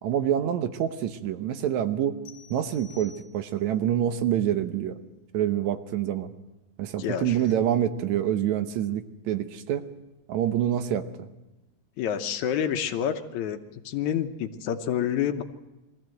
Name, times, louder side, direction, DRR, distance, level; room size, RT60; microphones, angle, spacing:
voice 1, 0.0-2.2 2.5-5.0 5.3-6.3 6.8-9.8 10.3-11.3, right 10 dB, 75° right, 10 dB, 2.2 m, -26 dB
sound 1, 2.2-3.8, left 5 dB, 50° left, 2.9 m, -51 dB
voice 2, 7.0-7.4 12.0-13.6 13.9-15.4, left 9 dB, 75° left, 8 dB, 2.3 m, -28 dB
22.0 x 15.0 x 7.8 m, 1.0 s
omnidirectional pair, 3.5 m